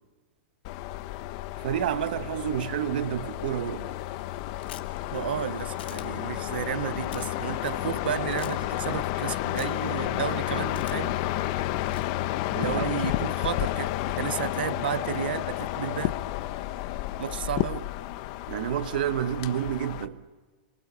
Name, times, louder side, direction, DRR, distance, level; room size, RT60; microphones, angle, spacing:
sound 1, 0.6-20.1, left 15 dB, 35° left, 0.9 m, -31 dB
voice 1, 1.6-3.9 12.5-12.9 13.2-13.3 18.5-20.3, right 10 dB, 55° right, 1.3 m, -29 dB
sound 2, 4.6-5.0 5.8-6.0 7.0-7.3 8.3-8.5 9.6-9.9 10.7-11.2 11.8-12.1, left 11 dB, 80° left, 2.1 m, -45 dB
voice 2, 5.1-11.2 12.5-16.2 17.2-17.9, right 11 dB, 75° right, 0.7 m, -32 dB
27.0 x 24.0 x 7.0 m
supercardioid pair, 175°, 5 cm